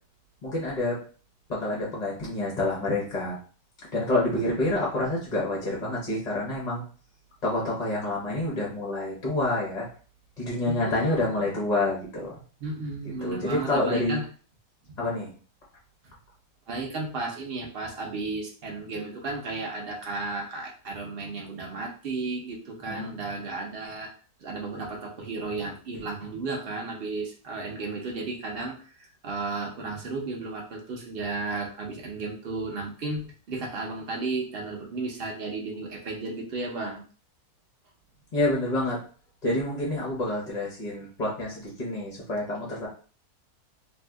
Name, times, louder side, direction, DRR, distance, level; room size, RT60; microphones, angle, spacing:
voice 1, 0.4-1.0 1.5-3.4 3.9-6.8 7.4-9.9 10.4-12.3 13.2-14.2 15.0-15.3 22.9-23.2 38.3-39.0 39.4-42.9, left 2 dB, 40° left, -3 dB, 0.6 m, -28 dB
voice 2, 10.7-11.5 12.6-14.2 14.9-15.0 16.0-16.1 16.7-24.1 24.4-37.0, right 3 dB, 50° right, 0 dB, 0.7 m, -34 dB
2.7 x 2.3 x 3.4 m, 0.40 s
omnidirectional pair, 1.7 m